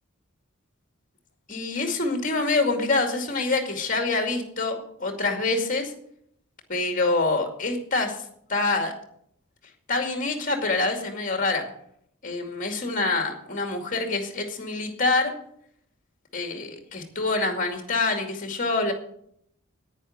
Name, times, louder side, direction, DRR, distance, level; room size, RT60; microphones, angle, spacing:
voice 1, 1.5-5.9 6.7-8.2 8.5-8.9 9.9-11.6 12.2-15.3 16.3-18.9, left 3 dB, 35° left, 4 dB, 2.3 m, -26 dB
9.9 x 9.8 x 6.4 m, 0.68 s
head